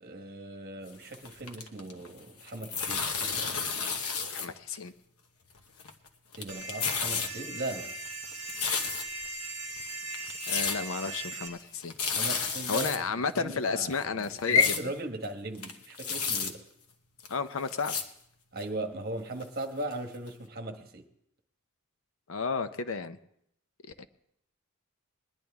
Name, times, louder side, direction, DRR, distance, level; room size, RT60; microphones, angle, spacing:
voice 1, 0.0-3.5 6.4-7.9 12.1-13.0 13.4-16.6 18.5-21.0, right 2 dB, 45° right, 4 dB, 1.2 m, -38 dB
sound 1, 0.9-2.1 2.4-4.5 4.7-4.8 5.6-6.1 6.3-7.3 7.7-9.3 9.8-9.9 10.1-10.8 11.1-11.2 11.5-11.6 11.8-13.0 13.4-13.5 13.8-14.8 15.2-15.3 15.5-16.5 17.2-17.3 17.7-18.0 18.6-18.7 19.4-19.5 19.9-20.0 20.3-20.4, left 5 dB, 80° left, 1.1 m, -32 dB
voice 2, 4.3-4.9 10.5-11.9 12.7-14.7 17.3-17.9 22.3-23.2 24.0-24.1, left 5 dB, 60° left, 11 dB, 0.6 m, -30 dB
sound 2, 6.5-11.5, right 2 dB, 5° right, 2.1 m, -39 dB
21.0 x 10.5 x 3.5 m, 0.73 s
head